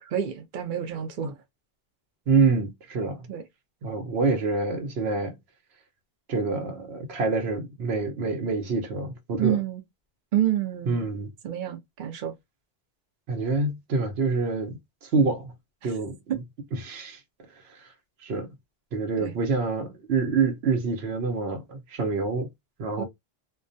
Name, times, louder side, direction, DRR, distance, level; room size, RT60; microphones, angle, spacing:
voice 1, 0.0-1.4 3.3-3.4 9.4-9.8 10.3-11.1 11.4-12.3 15.8-15.9 16.3-16.4 19.2-19.3 23.0-23.1, right 10 dB, 60° right, 0.7 m, -28 dB
voice 2, 2.3-3.2 3.8-5.3 6.3-9.6 10.9-11.3 13.3-15.5 15.8-16.2 16.8-17.2 17.7-17.8 18.2-18.5 18.9-22.5 22.8-23.0, right 4 dB, 80° right, 1.0 m, -26 dB
2.3 x 2.2 x 2.5 m
omnidirectional pair, 1.1 m